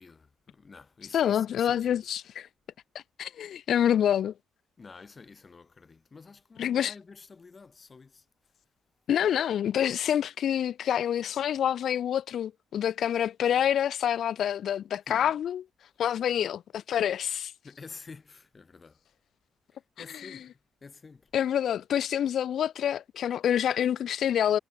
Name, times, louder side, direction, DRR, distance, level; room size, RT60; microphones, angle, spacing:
voice 1, 0.0-2.0 4.8-8.2 15.1-15.3 17.6-19.0 19.7-21.3, left 4 dB, 25° left, 4.8 m, -49 dB
voice 2, 1.1-2.5 2.9-4.3 6.6-6.9 9.1-15.6 16.0-17.5 21.3-24.6, left 10 dB, 60° left, 0.4 m, -27 dB
cardioid pair, 125°, 0 cm